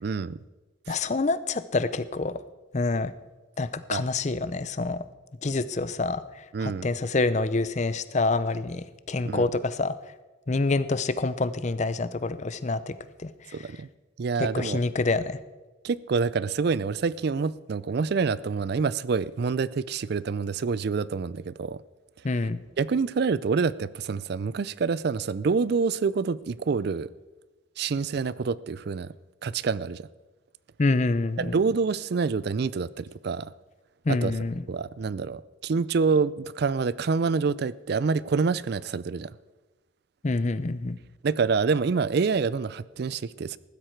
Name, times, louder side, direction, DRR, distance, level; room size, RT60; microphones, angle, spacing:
voice 1, 0.0-0.4 0.9-1.0 3.9-4.0 6.5-6.9 9.3-9.5 13.5-13.9 14.2-14.8 15.8-21.8 22.4-22.5 22.8-27.1 27.8-29.1 29.4-30.1 31.4-33.5 34.1-34.3 34.7-39.3 41.2-43.6, right 5 dB, 50° right, 0.4 m, -27 dB
voice 2, 0.9-2.3 2.7-3.1 3.6-5.0 5.4-6.2 6.6-8.8 9.1-9.9 10.5-12.9 13.2-13.3 14.4-15.4 22.2-22.6 30.8-31.6 34.1-34.5 40.2-41.0, left 3 dB, 35° left, 0.5 m, -26 dB
15.0 x 12.5 x 4.5 m
head